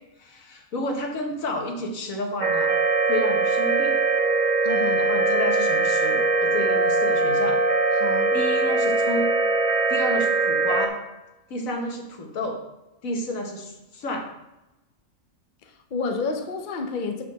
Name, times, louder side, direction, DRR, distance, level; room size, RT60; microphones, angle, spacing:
voice 1, 0.2-2.8 3.1-3.9 5.0-7.6 8.3-9.3 9.9-11.0 11.5-12.6 13.0-14.3, left 1 dB, 80° left, 2 dB, 1.6 m, -30 dB
sound 1, 2.4-10.9, right 3 dB, 45° right, 0.6 m, -21 dB
voice 2, 4.6-5.1 7.9-8.4 15.6-17.2, left 4 dB, 45° left, 4 dB, 0.7 m, -30 dB
5.6 x 4.5 x 6.3 m, 0.95 s
omnidirectional pair, 1.4 m